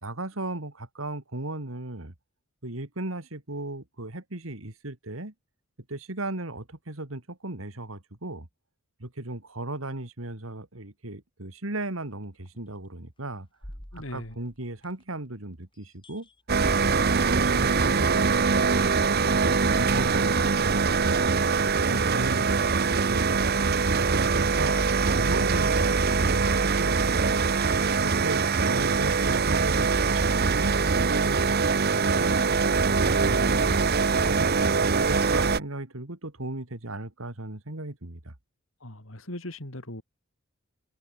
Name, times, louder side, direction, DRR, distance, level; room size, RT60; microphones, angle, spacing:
voice 1, 0.0-2.1 2.6-5.3 5.9-8.5 9.0-13.5 13.9-16.3 16.7-18.6 19.1-21.4 21.7-23.5 24.0-24.8 25.1-27.5 28.0-30.8 31.1-33.7 34.2-38.3, right 2 dB, 90° right, 2.8 m, -36 dB
sound 1, 12.4-12.6 13.6-15.2 16.0-16.3 16.6-18.8, equal, 25° left, 4.7 m, -46 dB
voice 2, 13.9-14.3 38.8-40.0, left 1 dB, 80° left, 4.8 m, -39 dB
sound 2, 16.5-35.6, right 4 dB, 50° right, 1.0 m, -23 dB
head